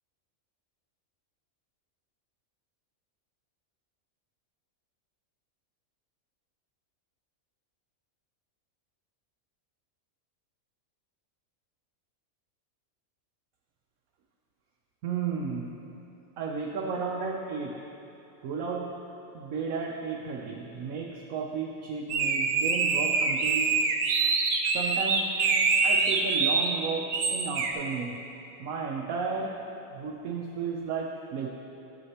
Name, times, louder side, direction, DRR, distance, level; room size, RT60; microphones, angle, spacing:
voice 1, 15.0-15.7 16.4-17.8 18.4-19.0 19.3-23.7 24.7-25.4 25.8-28.2 28.6-29.6 29.9-31.5, right 5 dB, 85° right, -1 dB, 1.1 m, -33 dB
sound 1, 22.1-26.7 27.1-27.7, right 4 dB, 65° right, 0.9 m, -25 dB
11.0 x 7.4 x 2.9 m, 2.9 s
omnidirectional pair, 1.4 m